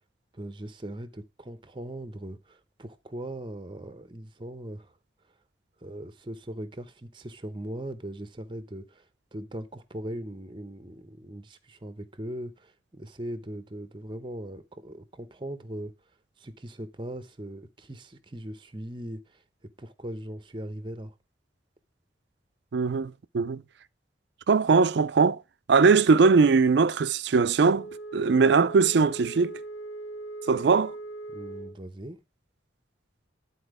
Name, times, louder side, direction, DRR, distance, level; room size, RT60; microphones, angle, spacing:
voice 1, 0.3-4.9 5.8-9.1 9.3-15.9 16.4-19.4 19.8-21.1 31.3-32.2, right 1 dB, 25° right, 0.7 m, -39 dB
voice 2, 22.7-23.6 24.5-25.4 25.7-27.9 28.1-29.5 30.5-30.9, right 4 dB, 65° right, 0.4 m, -20 dB
Wind instrument woodwind instrument, 27.7-31.8, right 2 dB, 85° left, 0.8 m, -40 dB
10.0 x 4.3 x 4.8 m
head